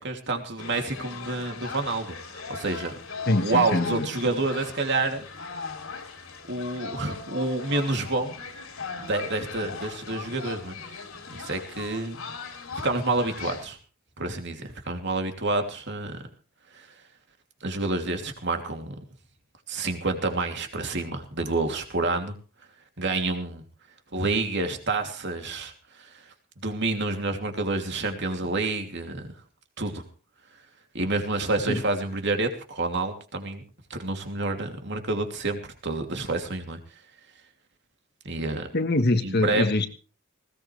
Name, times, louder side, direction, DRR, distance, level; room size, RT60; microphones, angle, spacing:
voice 1, 0.0-2.9 3.4-5.2 6.5-8.3 9.0-11.0 11.3-12.2 12.8-13.8 14.2-16.2 16.7-16.9 17.6-18.9 19.7-22.3 23.0-23.6 24.1-25.7 26.0-26.1 26.6-29.2 29.8-30.0 30.9-33.6 33.9-36.8 38.2-38.7 39.2-39.7, right 2 dB, 55° right, 4 dB, 2.9 m, -28 dB
sound 1, 0.6-13.7, left 4 dB, 75° left, 3.1 m, -39 dB
voice 2, 3.3-4.1 31.7-31.8 38.7-39.9, left 2 dB, 50° left, 8 dB, 1.4 m, -24 dB
20.0 x 17.0 x 3.3 m, 0.36 s
head